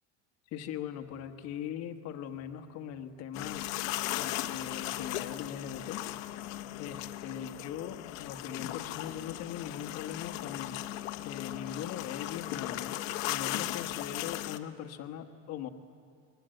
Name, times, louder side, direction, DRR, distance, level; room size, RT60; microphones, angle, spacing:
voice 1, 0.5-3.7 4.2-6.0 6.8-10.8 11.2-13.0 13.3-15.7, left 9 dB, 40° left, 7 dB, 1.3 m, -40 dB
sound 1, 3.3-14.6, left 15 dB, 75° left, 1.2 m, -37 dB
24.5 x 22.0 x 7.8 m, 2.3 s
supercardioid pair, 155°, 40 cm